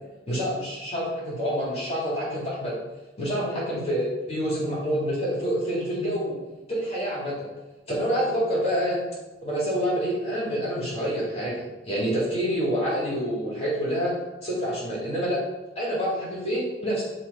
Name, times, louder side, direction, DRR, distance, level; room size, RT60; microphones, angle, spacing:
voice 1, 0.3-2.7 3.2-6.4 6.7-7.5 7.9-9.0 9.4-14.1 14.4-15.4 15.8-17.0, equal, 30° left, -6 dB, 2.0 m, -27 dB
7.5 x 3.2 x 4.0 m, 1.1 s
head